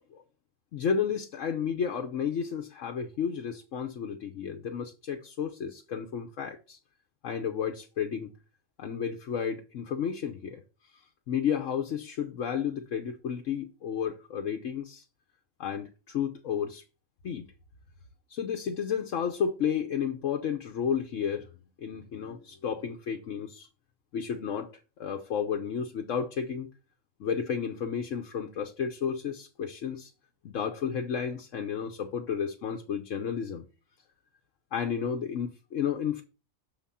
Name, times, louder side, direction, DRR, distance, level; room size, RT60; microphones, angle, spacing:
voice 1, 0.7-6.8 7.2-8.3 8.8-10.6 11.3-15.0 15.6-16.8 17.2-17.5 18.3-21.5 21.8-23.7 24.1-24.7 25.0-26.7 27.2-30.1 30.4-33.6 34.7-36.2, left 7 dB, 70° left, 1.2 m, -32 dB
6.7 x 3.7 x 5.5 m
omnidirectional pair, 1.4 m